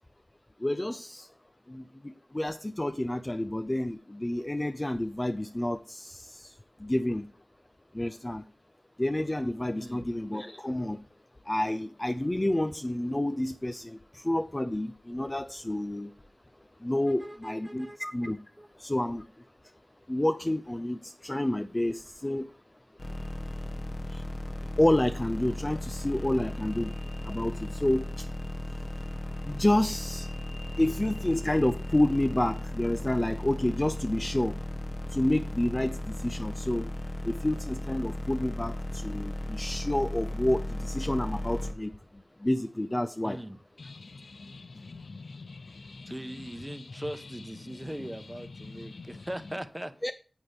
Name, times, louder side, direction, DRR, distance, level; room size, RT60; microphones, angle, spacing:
voice 1, 0.6-1.3 1.7-6.5 6.8-7.2 7.9-8.4 9.0-11.0 11.5-16.1 16.8-18.4 18.8-19.2 20.1-22.5 24.1-24.2 24.8-26.9 27.3-28.2 29.5-30.3 30.8-34.5 35.1-36.9 37.2-41.9 42.4-43.4 50.0-50.1, left 1 dB, 25° left, 9 dB, 0.5 m, -29 dB
voice 2, 9.7-10.1 17.1-18.0 18.6-18.7 43.2-43.6 46.1-49.9, right 1 dB, 15° right, 10 dB, 0.9 m, -40 dB
sound 1, 23.0-41.7, left 1 dB, 50° left, 1.6 m, -36 dB
sound 2, 43.8-49.6, left 3 dB, 80° left, 0.4 m, -46 dB
9.6 x 7.8 x 3.4 m, 0.38 s
wide cardioid pair, 55°, 0 cm